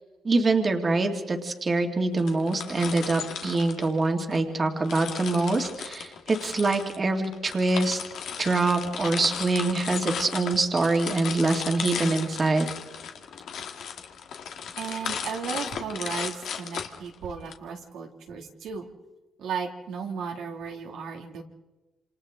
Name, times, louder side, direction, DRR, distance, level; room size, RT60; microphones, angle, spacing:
voice 1, 0.2-8.0 8.4-12.7, right 3 dB, 35° right, 4 dB, 2.2 m, -25 dB
sound 1, 2.2-4.4 4.8-17.5, left 7 dB, 70° left, 1.8 m, -36 dB
voice 2, 14.8-18.9 19.4-21.4, right 6 dB, 80° right, 1 dB, 2.2 m, -35 dB
27.5 x 27.0 x 3.7 m, 1.1 s
cardioid pair, 90°, 0 cm